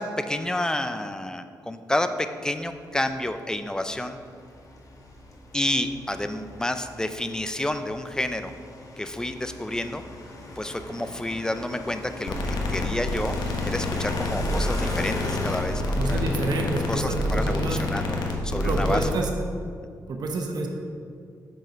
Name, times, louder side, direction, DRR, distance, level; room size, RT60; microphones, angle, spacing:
voice 1, 0.0-4.2 5.5-8.5 9.0-10.0 10.6-16.2 16.9-18.2 18.4-19.0, left 1 dB, 10° left, 9 dB, 0.5 m, -29 dB
sound 1, 2.5-18.6, left 1 dB, 50° left, 1.2 m, -39 dB
sound 2, 12.3-19.1, left 2 dB, 90° left, 1.0 m, -27 dB
voice 2, 16.0-17.8 18.6-19.3 20.1-20.7, right 3 dB, 70° right, 2 dB, 1.0 m, -28 dB
7.5 x 5.4 x 5.1 m, 2.3 s
cardioid pair, 95°, 7 cm